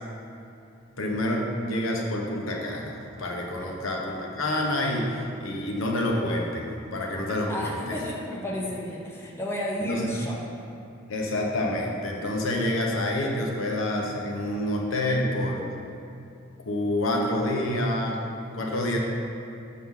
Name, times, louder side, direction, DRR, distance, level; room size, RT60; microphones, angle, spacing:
voice 1, 1.0-8.0 9.9-10.2 11.1-15.7 16.6-19.0, left 1 dB, 70° left, -1 dB, 0.9 m, -28 dB
voice 2, 7.5-10.4, left 1 dB, 10° left, -4 dB, 0.7 m, -32 dB
6.1 x 5.8 x 3.7 m, 2.6 s
head